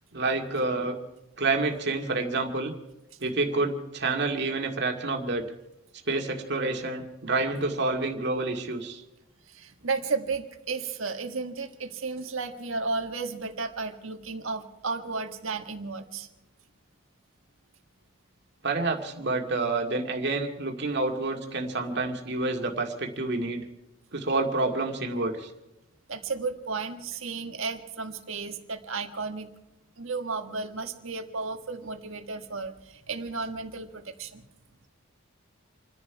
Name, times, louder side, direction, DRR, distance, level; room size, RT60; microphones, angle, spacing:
voice 1, 0.1-1.0 1.4-2.7 3.2-5.4 6.1-9.0 18.6-23.7 24.1-25.5, right 3 dB, 55° right, 3 dB, 2.1 m, -28 dB
voice 2, 9.5-16.3 26.1-29.5 30.0-34.4, right 4 dB, 70° right, 6 dB, 1.6 m, -33 dB
28.5 x 10.5 x 4.7 m, 0.97 s
head